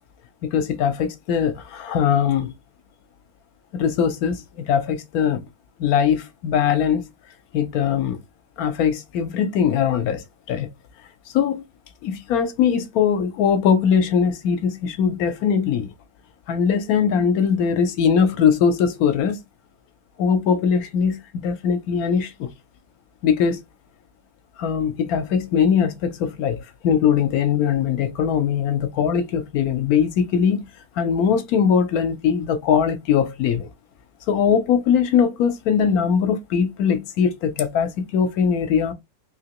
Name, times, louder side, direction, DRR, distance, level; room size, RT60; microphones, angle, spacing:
voice 1, 0.5-2.5 3.7-5.4 5.8-7.0 7.5-8.2 8.6-10.2 10.5-10.7 11.3-11.6 12.0-15.9 16.5-19.4 20.2-22.5 23.2-23.6 24.6-26.6 26.8-30.7 31.0-33.7 34.3-38.9, left 7 dB, 75° left, 1.1 m, -21 dB
3.4 x 2.9 x 2.9 m
omnidirectional pair, 1.6 m